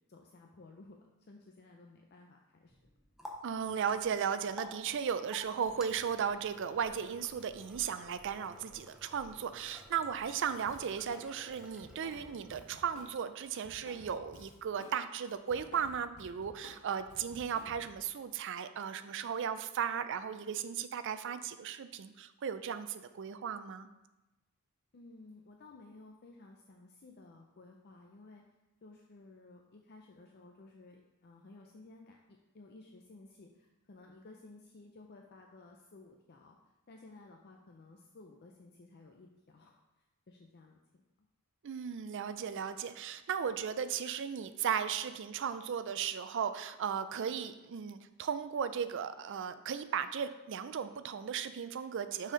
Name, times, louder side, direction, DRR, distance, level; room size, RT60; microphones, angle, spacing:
voice 1, 0.1-2.9 24.9-28.4 28.8-41.0, left 2 dB, 45° left, 2 dB, 0.5 m, -56 dB
Water tap faucet, 2.7-13.5, equal, ahead, 0.6 m, -53 dB
voice 2, 3.4-23.9 41.6-52.3, right 7 dB, 55° right, 12 dB, 0.4 m, -36 dB
Drum kit, 10.7-11.3 11.6-15.0 15.3-18.0, left 1 dB, 75° left, 1.4 m, -54 dB
6.4 x 4.2 x 5.0 m, 1.0 s
head